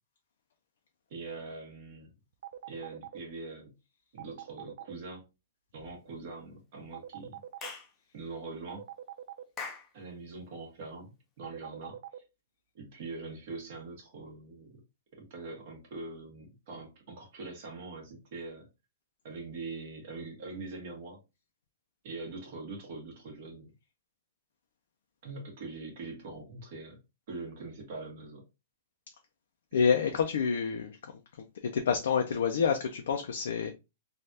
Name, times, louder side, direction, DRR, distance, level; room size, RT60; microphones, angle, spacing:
voice 1, 1.1-2.1 2.7-3.7 4.1-5.2 5.7-7.4 8.1-8.8 9.9-12.0 12.7-14.8 15.1-18.7 19.2-21.2 22.0-23.7 25.2-27.0 27.3-28.4, right 3 dB, 45° right, 1.2 m, -43 dB
sound 1, 2.4-3.2 4.2-4.9 6.9-7.7 8.7-9.4 11.4-12.2, right 11 dB, 65° right, 0.3 m, -43 dB
Clapping / Chirp tweet, 7.6-7.9 9.6-9.9, left 5 dB, 15° left, 0.5 m, -40 dB
voice 2, 29.7-31.0 31.6-33.7, left 6 dB, 75° left, 0.4 m, -28 dB
3.2 x 2.3 x 2.7 m
hypercardioid pair, 170°, 0 cm